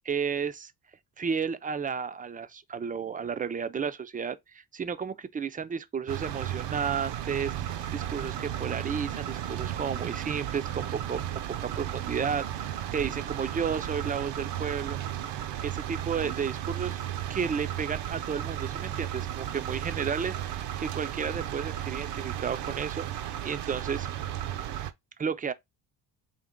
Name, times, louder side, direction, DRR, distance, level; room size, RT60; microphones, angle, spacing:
voice 1, 0.1-0.7 1.2-11.2 11.6-15.0 15.6-17.0 17.3-24.1 25.2-25.5, right 6 dB, 20° right, 0.3 m, -33 dB
sound 1, 6.1-24.9, right 11 dB, 80° right, 0.6 m, -34 dB
3.9 x 2.8 x 3.6 m
cardioid pair, 100°, 41 cm